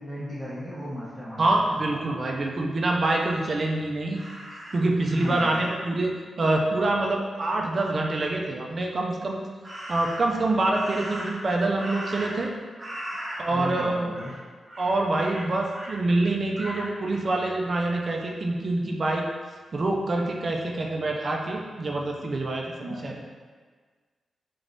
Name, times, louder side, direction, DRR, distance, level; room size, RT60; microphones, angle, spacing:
voice 1, 0.0-1.8 5.1-5.6 13.5-14.3 22.8-23.1, equal, 15° left, -9 dB, 1.0 m, -36 dB
voice 2, 1.4-4.2 4.7-9.4 9.9-12.5 13.4-14.1 14.8-19.3 19.7-23.3, right 2 dB, 35° right, 0 dB, 0.4 m, -26 dB
Crow, 4.1-5.9 9.6-10.4 10.7-12.5 12.8-13.8 14.1-14.4 14.7-16.0 16.5-16.9, right 1 dB, 20° right, 0.9 m, -38 dB
3.9 x 3.3 x 2.6 m, 1.5 s
wide cardioid pair, 165°, 0 cm